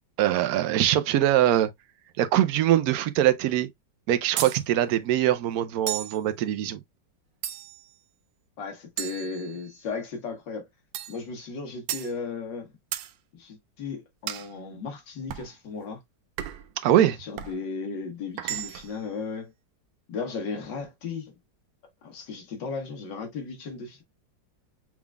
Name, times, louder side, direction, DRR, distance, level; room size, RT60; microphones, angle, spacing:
voice 1, 0.2-1.7 2.2-3.7 4.1-6.8 16.8-17.2, right 12 dB, 70° right, 1.0 m, -22 dB
sound 1, 4.4-4.6 5.9-6.2 7.4-7.9 9.0-9.9 10.9-11.2 11.9-12.1 12.9-13.1 14.3-14.5 15.3-15.5 16.4-16.7 17.4-17.6 18.4-19.0, right 12 dB, 85° right, 1.3 m, -34 dB
voice 2, 8.6-10.7 11.1-12.7 13.3-16.0 16.9-19.5 20.1-21.3 22.0-24.0, left 4 dB, 75° left, 2.1 m, -35 dB
6.0 x 3.7 x 2.2 m
omnidirectional pair, 2.0 m